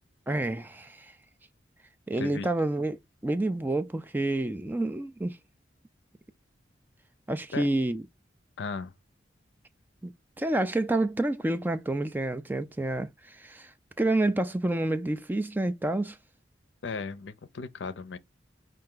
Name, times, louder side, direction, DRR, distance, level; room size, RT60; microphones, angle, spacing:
voice 1, 0.3-1.1 2.1-3.0 3.2-5.4 7.3-8.0 10.0-10.1 10.4-13.7 14.0-16.2, right 2 dB, 10° right, 0.3 m, -28 dB
voice 2, 8.6-8.9 16.8-18.2, left 4 dB, 75° left, 0.6 m, -36 dB
5.5 x 2.6 x 3.8 m
head